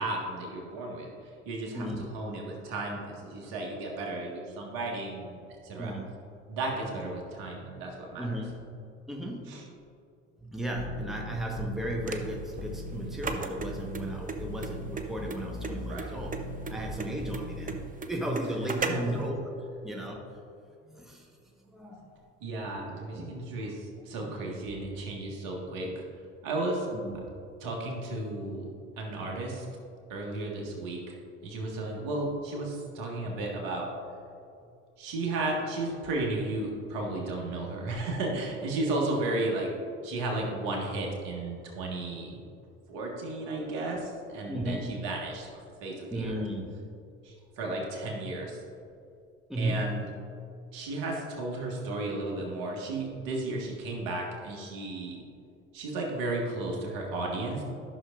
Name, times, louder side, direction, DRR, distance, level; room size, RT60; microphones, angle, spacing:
voice 1, 0.0-5.9 6.5-8.4 9.5-9.6 15.8-16.2 18.7-19.2 22.4-25.9 26.4-26.9 27.6-28.7 29.0-29.7 30.1-31.1 31.4-33.9 35.0-39.7 40.0-42.4 42.9-46.4 47.2-48.6 49.6-50.1 50.7-55.2 55.7-57.6, right 2 dB, 65° right, -1 dB, 1.8 m, -34 dB
voice 2, 1.7-2.1 5.8-6.2 8.2-8.8 9.1-9.5 10.4-19.5 19.8-20.2 20.8-21.4 21.7-22.1 23.1-23.4 24.2-24.4 26.9-27.4 44.5-45.0 46.1-46.9 49.5-49.9, right 1 dB, ahead, 0 dB, 1.2 m, -35 dB
sound 1, 10.8-17.8, left 1 dB, 50° left, 1.2 m, -39 dB
sound 2, 12.0-19.2, right 4 dB, 20° right, 0.7 m, -36 dB
12.0 x 6.4 x 2.6 m, 2.5 s
hypercardioid pair, 60°, 37 cm